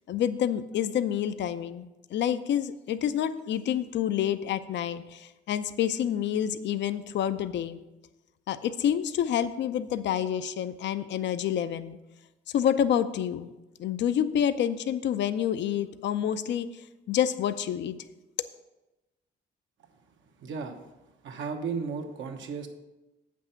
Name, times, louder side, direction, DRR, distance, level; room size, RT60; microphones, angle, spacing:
voice 1, 0.1-7.8 8.5-12.0 12.5-13.5 13.8-18.0, left 9 dB, 65° left, 12 dB, 0.5 m, -28 dB
voice 2, 20.4-20.8 21.2-22.7, right 5 dB, 75° right, 4 dB, 1.2 m, -34 dB
7.8 x 6.1 x 5.7 m, 1.0 s
cardioid pair, 90°, 20 cm